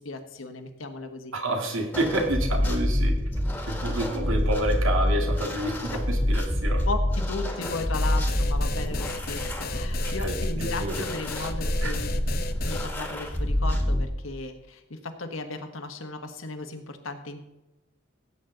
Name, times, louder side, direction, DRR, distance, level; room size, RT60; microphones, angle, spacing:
voice 1, 0.0-1.3 6.9-12.1 12.6-17.5, left 3 dB, 90° left, 6 dB, 1.5 m, -36 dB
voice 2, 1.3-3.1 3.7-6.8 10.2-11.0 11.4-11.5 11.8-11.9, right 1 dB, 85° right, 3 dB, 2.2 m, -29 dB
sound 1, 1.9-14.0, left 1 dB, 10° left, 1.5 m, -27 dB
sound 2, 7.6-12.9, left 4 dB, 45° left, 0.8 m, -36 dB
16.0 x 8.3 x 3.9 m, 0.98 s
head